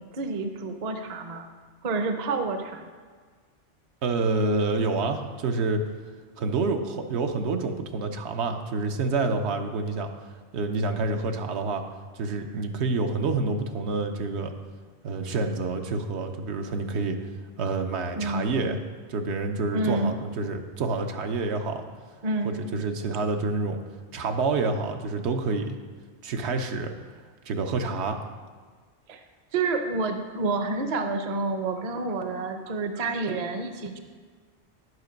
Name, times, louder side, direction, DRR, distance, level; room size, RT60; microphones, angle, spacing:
voice 1, 0.0-1.5 1.8-2.9 18.2-18.8 19.7-20.2 22.2-22.5 29.1-29.2 29.5-34.0, right 3 dB, 45° right, 7 dB, 0.6 m, -29 dB
voice 2, 4.0-5.8 6.4-11.8 12.1-14.5 15.0-17.2 17.6-18.8 19.1-21.8 22.4-23.8 24.1-25.8 26.2-26.9 27.5-28.2, right 3 dB, 75° right, 5 dB, 0.9 m, -28 dB
9.6 x 5.8 x 5.1 m, 1.5 s
omnidirectional pair, 1.2 m